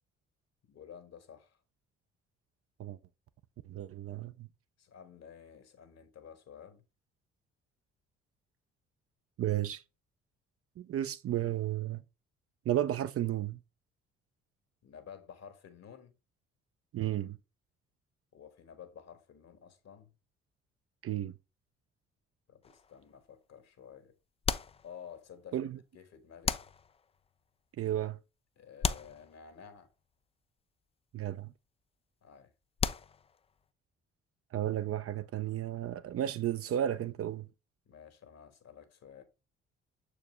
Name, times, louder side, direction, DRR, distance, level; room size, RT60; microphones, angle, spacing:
voice 1, 0.7-1.6 4.8-6.8 14.8-16.1 18.3-20.1 22.5-24.1 24.8-25.7 25.9-26.6 28.6-29.9 32.2-32.5 37.9-39.2, left 7 dB, 50° left, 1.5 m, -52 dB
voice 2, 3.7-4.5 9.4-9.8 10.8-12.0 12.7-13.6 16.9-17.4 21.0-21.3 25.5-25.8 27.8-28.2 31.1-31.5 34.5-37.5, right 12 dB, 45° right, 0.6 m, -33 dB
sound 1, 22.6-23.2 24.4-25.4 26.4-27.3 28.8-29.9 32.8-33.6, left 6 dB, 20° left, 0.4 m, -36 dB
6.8 x 4.9 x 3.1 m
figure-of-eight pair, 45°, 34 cm